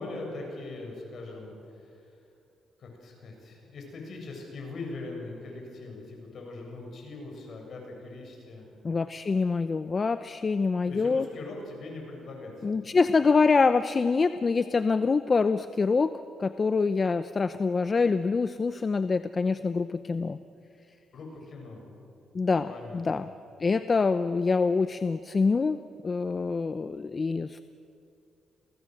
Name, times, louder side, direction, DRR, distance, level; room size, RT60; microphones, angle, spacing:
voice 1, 0.0-2.0 2.8-8.7 10.8-13.0 21.1-21.9 22.7-23.3, left 2 dB, 55° left, 1 dB, 7.5 m, -41 dB
voice 2, 8.8-11.3 12.6-16.1 16.4-20.4 22.3-22.7 22.9-23.3 23.6-27.6, left 4 dB, 35° left, 12 dB, 0.7 m, -25 dB
28.0 x 18.0 x 7.8 m, 2.6 s
cardioid pair, 90°, 0 cm